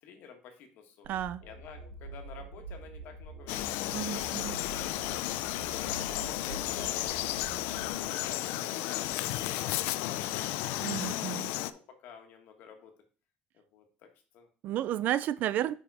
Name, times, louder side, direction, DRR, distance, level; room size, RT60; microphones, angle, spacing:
voice 1, 0.0-1.1 1.4-5.1 5.6-7.0 7.5-10.6 11.1-12.9 13.5-14.1 14.3-14.5, left 6 dB, 60° left, 1.5 m, -51 dB
sound 1, 1.0-8.7, right 3 dB, 80° right, 2.8 m, -46 dB
voice 2, 1.1-1.4 3.9-4.6 10.8-11.5 14.6-15.7, right 12 dB, 50° right, 0.3 m, -32 dB
Frog, 3.5-11.7, left 15 dB, 80° left, 0.4 m, -33 dB
5.4 x 4.8 x 4.8 m
cardioid pair, 155°, 4 cm